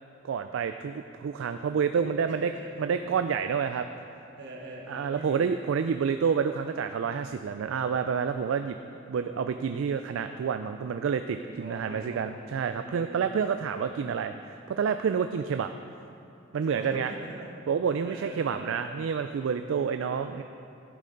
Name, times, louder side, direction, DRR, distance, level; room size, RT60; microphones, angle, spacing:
voice 1, 0.2-2.5 2.8-3.9 4.9-8.8 9.1-15.7 16.5-17.1 17.7-20.4, right 6 dB, 80° right, 8 dB, 0.3 m, -29 dB
voice 2, 2.3-3.1 4.4-5.4 11.4-12.4 12.7-14.1 16.6-17.5 18.0-19.1 19.8-20.4, right 1 dB, 60° right, -2 dB, 1.2 m, -44 dB
11.5 x 8.4 x 3.9 m, 2.8 s
head